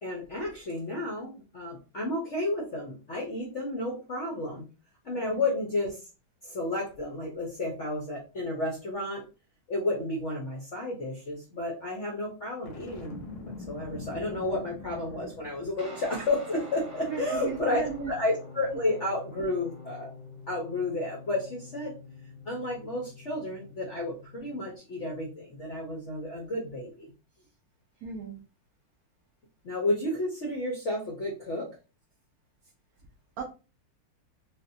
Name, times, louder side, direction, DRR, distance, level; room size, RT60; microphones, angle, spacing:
voice 1, 0.0-4.6 5.0-6.0 6.4-9.2 9.7-20.1 20.5-21.9 22.5-27.1 29.6-31.8, left 2 dB, 70° left, -2 dB, 0.7 m, -32 dB
Boom, 12.6-15.8, left 2 dB, 90° left, 1.7 m, -43 dB
Guitar, 15.8-24.7, left 3 dB, 5° right, 0.7 m, -46 dB
voice 2, 17.1-18.1 28.0-28.4 33.4-33.5, right 6 dB, 85° right, 0 dB, 0.8 m, -35 dB
3.9 x 2.2 x 2.6 m, 0.33 s
omnidirectional pair, 2.3 m